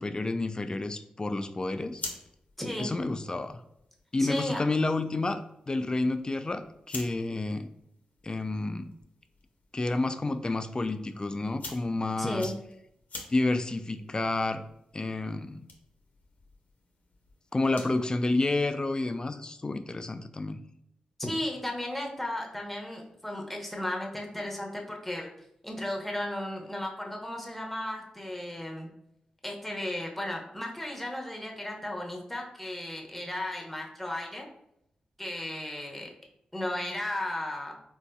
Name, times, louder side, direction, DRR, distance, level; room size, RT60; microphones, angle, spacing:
voice 1, 0.0-2.0 2.8-3.6 4.1-7.7 8.2-8.9 9.7-12.5 13.3-14.6 14.9-15.7 17.5-20.6, left 2 dB, 30° left, 9 dB, 0.3 m, -30 dB
sound 1, 1.7-18.1, left 3 dB, 70° left, 0.7 m, -49 dB
voice 2, 2.6-2.9 4.2-4.6 12.2-12.5 21.2-25.3 25.6-28.9 29.4-34.5 35.2-36.1 36.5-37.7, left 1 dB, 5° left, 0 dB, 0.8 m, -35 dB
3.7 x 2.6 x 2.2 m, 0.78 s
cardioid pair, 50°, 3 cm